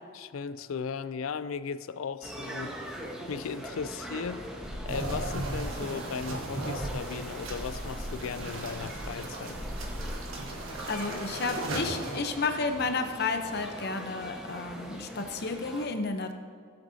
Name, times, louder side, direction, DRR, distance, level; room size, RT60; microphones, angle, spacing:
voice 1, 0.1-2.8 3.0-4.5 4.8-9.6, left 6 dB, 80° left, 0.4 m, -37 dB
sound 1, 2.2-15.9, equal, 5° right, 1.2 m, -42 dB
sound 2, 4.6-7.0 7.5-12.1, equal, 25° left, 2.7 m, -41 dB
sound 3, 4.9-12.3, right 2 dB, 75° right, 1.4 m, -37 dB
voice 2, 10.9-16.4, left 3 dB, 50° left, 0.8 m, -32 dB
16.5 x 7.9 x 2.8 m
head